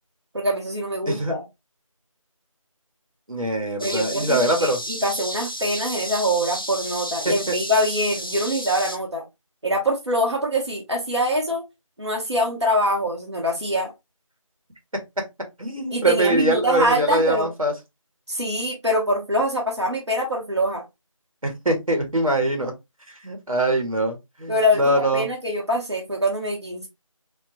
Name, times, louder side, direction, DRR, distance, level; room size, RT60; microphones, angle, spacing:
voice 1, 0.3-1.4 3.8-9.2 9.6-11.6 12.0-13.9 15.9-17.5 18.3-20.8 24.5-26.9, equal, 55° right, 0.9 m, -24 dB
voice 2, 3.3-4.8 7.5-7.6 15.6-17.7 21.4-22.7 23.2-25.3, right 1 dB, 80° right, 1.3 m, -23 dB
sound 1, 3.8-9.0, equal, 40° left, 0.4 m, -32 dB
3.7 x 2.2 x 2.7 m
figure-of-eight pair, 180°, 18 cm